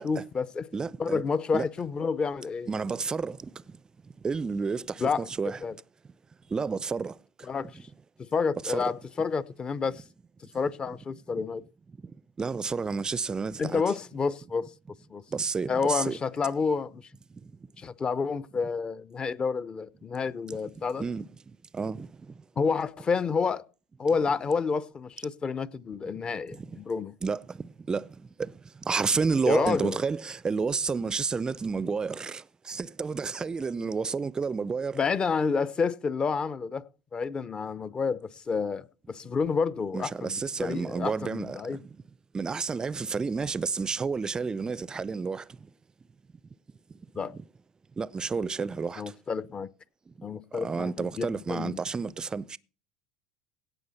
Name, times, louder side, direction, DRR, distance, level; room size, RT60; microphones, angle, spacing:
voice 1, 0.0-0.7 1.0-2.7 5.0-5.3 5.6-5.7 7.5-7.8 8.2-10.0 10.5-11.6 13.6-14.7 15.1-15.2 15.7-17.0 17.8-21.0 22.6-23.6 24.0-27.1 29.5-30.0 34.9-41.8 47.2-47.3 49.0-49.7 50.2-51.8, left 5 dB, 30° left, 0.8 m, -29 dB
voice 2, 0.7-1.2 1.5-1.7 2.7-3.5 4.2-5.6 6.5-7.1 8.6-8.9 12.4-13.8 15.3-16.2 21.0-21.3 21.7-22.1 27.2-28.1 28.4-28.5 28.8-35.0 39.9-41.8 42.3-45.4 47.3-47.4 48.0-49.0 50.5-52.6, right 5 dB, 20° right, 0.5 m, -30 dB
17.0 x 6.3 x 4.3 m
hypercardioid pair, 85°, 3 cm